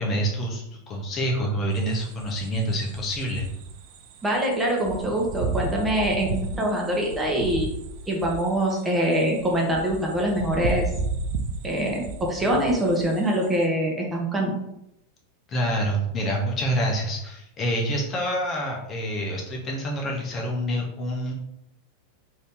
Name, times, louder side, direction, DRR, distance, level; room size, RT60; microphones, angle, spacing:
voice 1, 0.0-3.5 15.5-21.3, equal, 30° left, -1 dB, 0.8 m, -27 dB
sound 1, 1.7-13.6, right 3 dB, 65° right, 0.4 m, -34 dB
voice 2, 4.2-7.7 8.1-10.9 11.6-14.5, right 1 dB, 15° right, -1 dB, 1.0 m, -24 dB
2.7 x 2.6 x 3.6 m, 0.83 s
hypercardioid pair, 110°, 0 cm